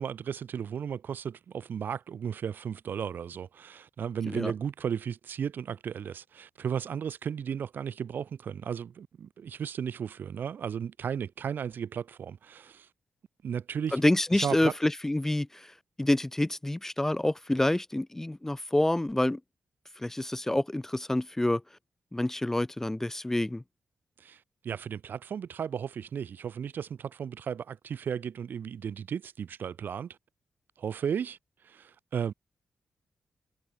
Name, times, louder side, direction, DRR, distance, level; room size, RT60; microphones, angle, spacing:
voice 1, 0.0-12.9 13.4-14.0 14.3-14.7 24.2-30.2 30.8-31.4 31.6-32.3, right 7 dB, 65° right, 0.8 m, -35 dB
voice 2, 13.9-15.7 16.0-19.4 20.0-21.6 22.1-23.6, left 1 dB, 10° left, 0.5 m, -27 dB
cardioid pair, 100°, 4 cm